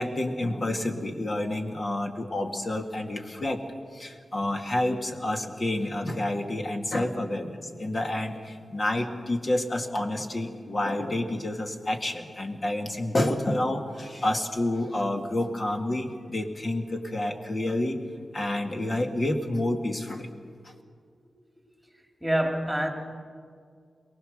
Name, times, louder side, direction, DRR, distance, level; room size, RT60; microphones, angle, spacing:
voice 1, 0.0-3.6 3.9-18.0 18.3-20.3, left 1 dB, 40° left, 4 dB, 2.1 m, -29 dB
voice 2, 22.2-22.9, right 1 dB, 5° right, 2 dB, 3.3 m, -25 dB
23.0 x 19.0 x 6.6 m, 2.1 s
wide cardioid pair, 85°, 0 cm